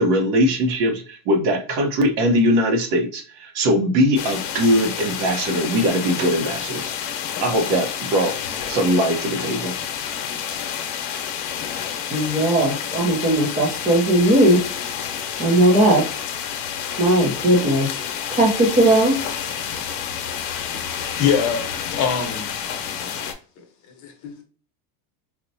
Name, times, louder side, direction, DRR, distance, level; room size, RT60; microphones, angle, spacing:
voice 1, 0.0-6.9 7.4-9.7, equal, 55° right, 0.8 m, -21 dB
sound 1, 4.2-23.3, left 8 dB, 80° left, 0.8 m, -29 dB
voice 2, 12.1-14.6 15.4-16.0 17.0-17.9 18.3-19.2, right 1 dB, 15° right, 0.5 m, -17 dB
voice 3, 20.6-21.7 21.9-22.6 23.6-24.4, left 7 dB, 40° left, 0.8 m, -25 dB
4.1 x 2.1 x 2.6 m
cardioid pair, 165°, 45 cm